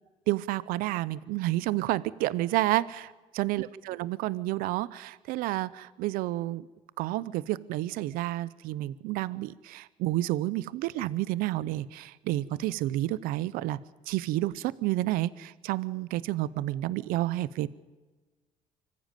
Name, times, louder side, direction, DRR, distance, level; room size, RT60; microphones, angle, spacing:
voice 1, 0.3-6.7 7.0-13.8 14.1-17.7, right 16 dB, 85° right, 19 dB, 0.7 m, -30 dB
25.0 x 14.5 x 9.1 m, 1.3 s
cardioid pair, 85°, 15 cm